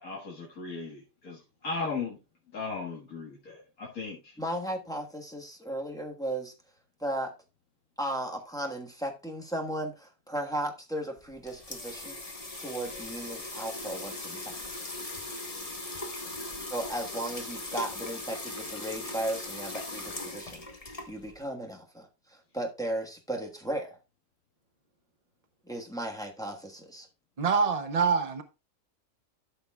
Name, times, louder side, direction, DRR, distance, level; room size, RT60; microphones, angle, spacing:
voice 1, 0.0-2.2 2.5-4.4 15.8-16.4, left 4 dB, 80° left, 2.2 m, -37 dB
voice 2, 4.4-6.5 7.0-7.3 8.0-12.2 12.6-14.5 16.7-20.6 21.1-22.1 22.5-24.0 25.7-27.1, right 1 dB, 5° left, 1.2 m, -35 dB
sound 1, 11.2-21.5, left 2 dB, 25° left, 1.3 m, -39 dB
voice 3, 27.4-28.4, right 5 dB, 50° right, 0.4 m, -25 dB
13.0 x 6.7 x 2.3 m
omnidirectional pair, 1.5 m